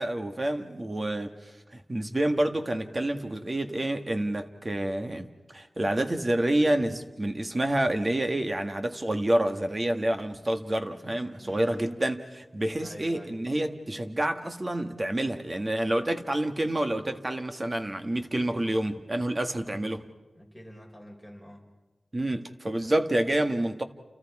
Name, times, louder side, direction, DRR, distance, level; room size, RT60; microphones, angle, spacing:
voice 1, 0.0-1.3 1.7-5.3 5.5-20.0 22.1-23.8, right 1 dB, 30° right, 1.6 m, -28 dB
voice 2, 11.4-11.9 12.8-13.4 19.6-20.1 20.3-21.6, equal, 5° right, 5.4 m, -47 dB
30.0 x 29.0 x 4.8 m
wide cardioid pair, 90°, 0 cm